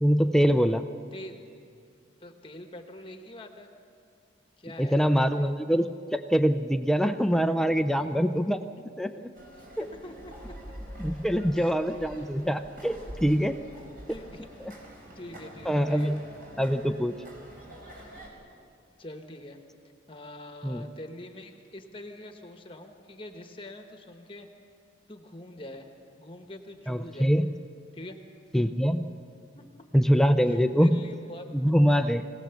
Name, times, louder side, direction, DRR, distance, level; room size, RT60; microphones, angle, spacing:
voice 1, 0.0-0.9 4.8-8.6 9.0-9.3 9.8-9.9 11.0-13.5 14.6-14.7 15.7-16.2 16.6-17.2 20.6-20.9 26.9-27.5 28.5-29.1 29.9-31.0 31.5-32.2, equal, ahead, 8 dB, 0.4 m, -24 dB
voice 2, 2.2-3.7 4.6-5.5 9.6-10.3 11.5-12.1 14.1-14.5 15.1-16.2 19.0-19.6 20.1-24.5 25.1-25.9 26.2-27.3 27.9-28.2 29.5-29.7 30.5-31.5, left 1 dB, 25° left, 5 dB, 1.1 m, -44 dB
sound 1, 9.3-18.3, equal, 50° right, 4.5 m, -45 dB
23.5 x 17.0 x 6.9 m, 2.4 s
head